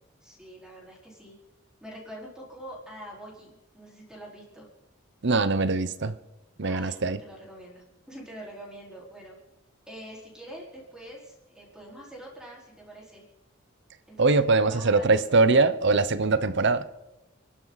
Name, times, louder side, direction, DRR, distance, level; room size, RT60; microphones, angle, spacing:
voice 1, 0.2-1.4 1.8-4.7 6.6-9.4 9.9-13.2 14.1-15.2, right 1 dB, 5° right, -4 dB, 4.5 m, -45 dB
voice 2, 5.2-6.2 6.6-7.2 14.2-16.8, right 3 dB, 60° right, 13 dB, 0.9 m, -22 dB
29.0 x 12.0 x 4.1 m, 0.98 s
head